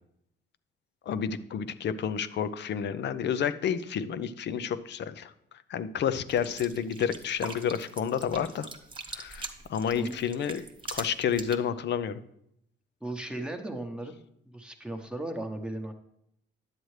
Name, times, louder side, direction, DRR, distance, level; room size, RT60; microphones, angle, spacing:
voice 1, 1.1-5.3 5.7-8.7 9.1-10.6 10.9-12.2, left 8 dB, 60° left, 13 dB, 0.6 m, -30 dB
sound 1, 6.3-11.6, right 3 dB, 25° right, 1.2 m, -42 dB
voice 2, 13.0-14.1 14.5-15.9, right 1 dB, 5° right, 4 dB, 1.0 m, -36 dB
10.5 x 7.7 x 3.2 m, 0.75 s
cardioid pair, 90°, 20 cm